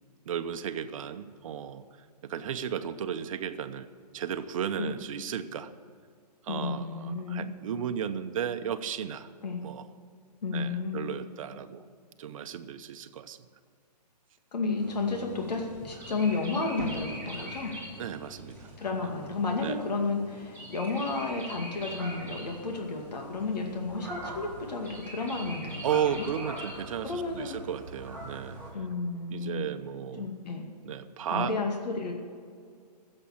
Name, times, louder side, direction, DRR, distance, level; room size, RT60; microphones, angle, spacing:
voice 1, 0.3-1.8 2.2-3.9 4.1-5.7 6.4-9.3 9.6-9.8 10.5-11.9 12.2-13.4 18.0-18.7 19.6-19.8 25.8-28.6 29.3-30.3 30.8-31.5, right 8 dB, 55° right, 10 dB, 0.9 m, -34 dB
voice 2, 6.5-7.5 9.4-9.6 10.4-11.1 14.5-17.7 18.8-25.8 26.2-26.3 27.0-27.6 28.7-29.7 30.2-30.7 31.3-32.1, left 3 dB, 75° left, 2 dB, 2.2 m, -32 dB
sound 1, 14.7-28.7, right 1 dB, 10° left, 3.9 m, -42 dB
15.0 x 7.7 x 7.3 m, 2.2 s
hypercardioid pair, 145°, 21 cm